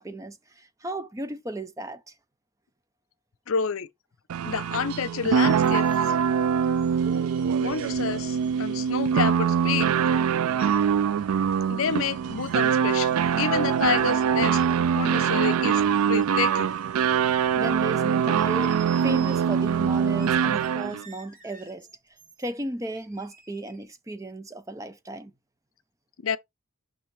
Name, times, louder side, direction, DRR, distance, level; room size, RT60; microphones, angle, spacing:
voice 1, 0.0-2.1 17.6-21.9 22.4-25.3, right 2 dB, 15° right, 0.4 m, -35 dB
voice 2, 3.5-3.9 4.5-6.2 7.6-9.9 10.6-10.8 11.7-14.6 14.9-16.7 26.2-26.4, left 6 dB, 70° left, 0.5 m, -29 dB
sound 1, 4.3-21.0, right 7 dB, 80° right, 0.3 m, -23 dB
sound 2, 5.0-6.2 6.8-8.5 9.7-10.1 10.9-11.4 12.1-14.2 14.5-14.8 15.2-17.7 18.0-19.5 20.2-22.5 22.9-23.9, right 6 dB, 40° right, 2.0 m, -52 dB
5.8 x 5.4 x 3.2 m
head